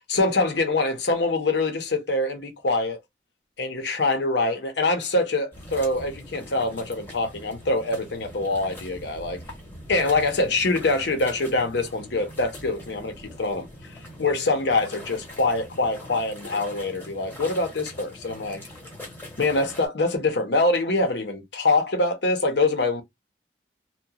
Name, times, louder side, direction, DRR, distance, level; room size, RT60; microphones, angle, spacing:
voice 1, 0.1-3.0 3.6-9.4 9.9-18.6 19.4-23.0, left 2 dB, 75° left, 0.8 m, -24 dB
sound 1, 5.5-19.9, left 1 dB, 10° left, 0.9 m, -42 dB
2.8 x 2.2 x 2.3 m
head